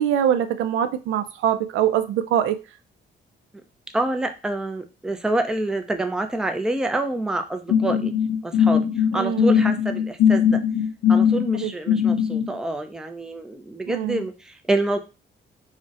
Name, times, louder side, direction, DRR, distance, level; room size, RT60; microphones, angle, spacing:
voice 1, 0.0-2.6 9.1-9.6 11.5-11.7 13.9-14.2, right 10 dB, 80° right, 11 dB, 0.4 m, -23 dB
voice 2, 3.9-8.1 8.4-8.8 9.1-10.6 11.1-15.0, right 2 dB, 5° right, 6 dB, 0.4 m, -27 dB
sound 1, 7.7-12.5, left 8 dB, 60° left, 0.5 m, -20 dB
2.4 x 2.1 x 3.9 m, 0.30 s
cardioid pair, 90°, 20 cm